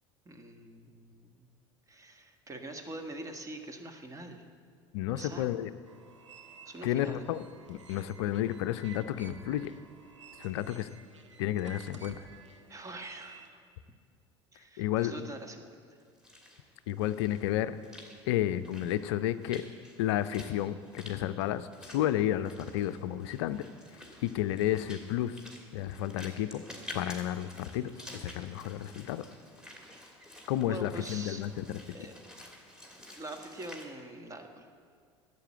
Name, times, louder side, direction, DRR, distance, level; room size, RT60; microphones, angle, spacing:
voice 1, 0.2-1.5 1.9-4.4 5.1-5.5 6.6-7.3 12.7-13.6 14.5-15.8 30.7-31.4 31.9-32.1 33.1-34.7, right 2 dB, 20° right, 5 dB, 1.6 m, -44 dB
voice 2, 4.9-5.7 6.8-7.4 7.7-9.7 10.4-10.9 11.4-12.3 14.8-15.1 16.9-17.8 18.3-19.7 20.0-23.7 24.2-25.4 25.7-26.6 26.9-29.2 30.5-31.8, left 12 dB, 65° left, 13 dB, 0.5 m, -31 dB
sound 1, 5.9-13.5, right 5 dB, 85° right, 1.0 m, -53 dB
Walk footsteps / Splash splatter, 16.0-33.9, left 1 dB, 5° right, 2.5 m, -50 dB
11.5 x 8.4 x 8.8 m, 2.1 s
figure-of-eight pair, 70°, 15 cm